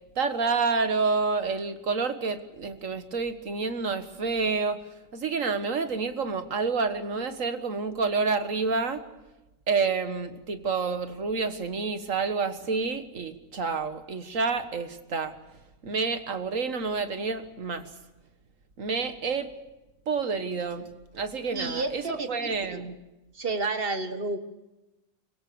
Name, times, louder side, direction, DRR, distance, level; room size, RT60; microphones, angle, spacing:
voice 1, 0.2-4.8 5.1-9.0 9.7-15.4 15.8-17.9 18.8-19.5 20.1-23.0, right 4 dB, 75° right, 9 dB, 2.0 m, -29 dB
voice 2, 21.5-22.8 23.4-24.4, right 3 dB, 45° right, 8 dB, 1.9 m, -31 dB
24.5 x 22.5 x 7.0 m, 1.0 s
omnidirectional pair, 1.4 m